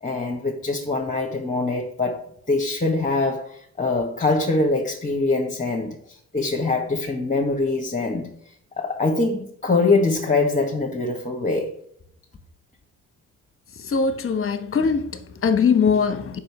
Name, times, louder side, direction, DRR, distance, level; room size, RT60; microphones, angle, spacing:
voice 1, 0.0-8.3 8.8-11.7, left 3 dB, 20° left, 1.6 m, -23 dB
voice 2, 13.8-16.4, left 5 dB, 40° left, 1.1 m, -21 dB
7.6 x 5.7 x 4.9 m
supercardioid pair, 70°, 34 cm